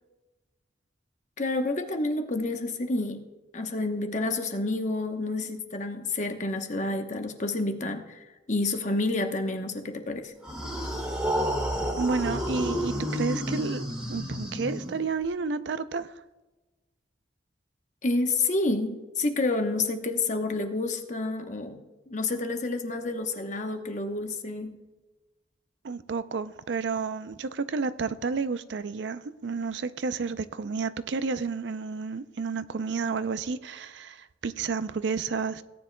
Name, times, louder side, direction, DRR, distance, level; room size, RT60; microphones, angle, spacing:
voice 1, 1.4-3.2 3.5-10.3 18.0-24.7, left 2 dB, 40° left, 1.0 m, -29 dB
sound 1, 10.4-15.2, equal, 5° right, 1.9 m, -30 dB
voice 2, 12.0-16.1 25.8-35.6, right 4 dB, 75° right, 0.5 m, -31 dB
17.5 x 9.9 x 2.2 m
head